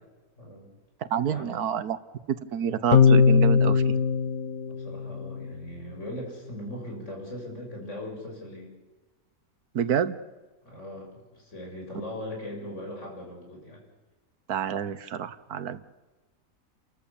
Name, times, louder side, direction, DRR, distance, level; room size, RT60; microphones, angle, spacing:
voice 1, 0.4-0.7 1.3-1.6 4.7-8.7 10.6-13.8, left 1 dB, 50° left, 0 dB, 6.8 m, -39 dB
voice 2, 1.1-2.0 2.5-4.0 9.7-10.2 14.5-15.8, right 8 dB, 90° right, 14 dB, 1.6 m, -28 dB
sound 1, 2.9-5.5, left 6 dB, 80° left, 1.8 m, -21 dB
30.0 x 14.0 x 8.4 m, 1.2 s
omnidirectional pair, 1.6 m